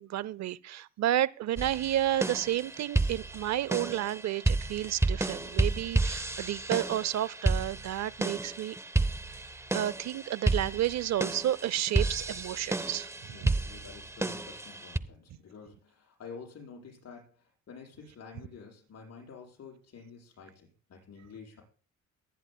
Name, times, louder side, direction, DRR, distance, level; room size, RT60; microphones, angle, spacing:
voice 1, 0.0-8.8 9.7-13.1 13.4-13.5, right 12 dB, 65° right, 0.6 m, -31 dB
sound 1, 1.6-15.0, right 2 dB, 10° right, 0.7 m, -31 dB
voice 2, 13.3-21.6, left 5 dB, 55° left, 6.9 m, -49 dB
23.0 x 10.5 x 2.2 m
cardioid pair, 90°, 30 cm